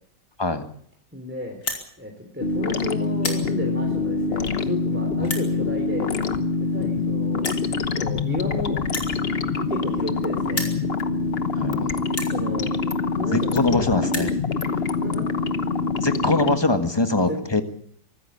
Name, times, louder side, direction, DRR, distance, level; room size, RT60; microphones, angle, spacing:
voice 1, 1.1-1.6 2.0-6.1 6.6-7.5 7.9-8.8 9.6-10.7 12.3-12.7 13.1-13.8 15.0-15.3 17.1-17.4, left 1 dB, 5° right, 2 dB, 3.3 m, -32 dB
sound 1, 1.5-1.8 2.5-2.7 3.0-3.4 4.2-4.3 5.2-5.5 6.5-6.6 6.8-6.9 7.4-7.7 8.8-10.2 10.4-10.8 11.5-11.6 12.1-12.3 13.3-13.4 13.6-13.7 13.9-14.3, left 3 dB, 60° left, 3.7 m, -31 dB
sound 2, 2.4-16.6, left 4 dB, 40° left, 1.2 m, -25 dB
voice 2, 11.5-12.0 13.3-14.3 16.0-17.6, left 2 dB, 15° left, 8 dB, 1.5 m, -23 dB
24.5 x 13.5 x 8.6 m, 0.63 s
omnidirectional pair, 1.8 m